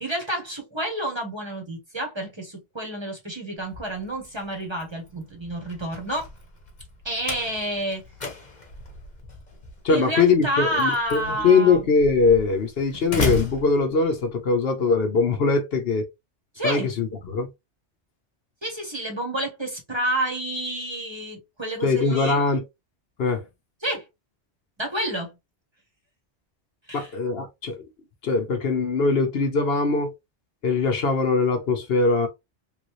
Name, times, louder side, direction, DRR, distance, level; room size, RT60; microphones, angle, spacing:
voice 1, 0.0-6.3 7.0-8.0 9.9-11.8 16.6-16.9 18.6-22.4 23.8-24.0 24.8-25.3 26.9-27.1, right 1 dB, 25° right, 1.0 m, -29 dB
Slam, 3.6-14.5, left 3 dB, 40° left, 1.1 m, -35 dB
voice 2, 9.8-16.0 16.6-17.5 21.8-22.6 23.2-23.4 26.9-27.8 28.2-30.1 30.6-32.3, left 4 dB, 60° left, 0.9 m, -21 dB
3.4 x 2.6 x 3.0 m
omnidirectional pair, 1.2 m